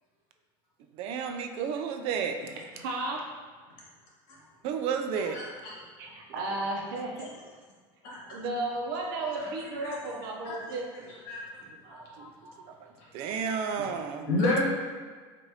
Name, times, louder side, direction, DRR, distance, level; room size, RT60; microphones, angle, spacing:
voice 1, 0.9-2.6 4.6-5.4 11.9-12.3 12.7-12.9 13.1-14.4, right 6 dB, 55° right, 5 dB, 0.4 m, -32 dB
voice 2, 2.8-3.2 6.0-7.3 8.2-11.2 13.8-13.9, right 2 dB, 85° right, -1 dB, 0.8 m, -34 dB
voice 3, 5.3-5.7 8.0-8.2 10.4-10.6 11.3-11.4 11.9-12.5 14.3-14.7, left 2 dB, 70° left, -5 dB, 1.4 m, -29 dB
4.7 x 2.5 x 2.8 m, 1.5 s
supercardioid pair, 135°, 11 cm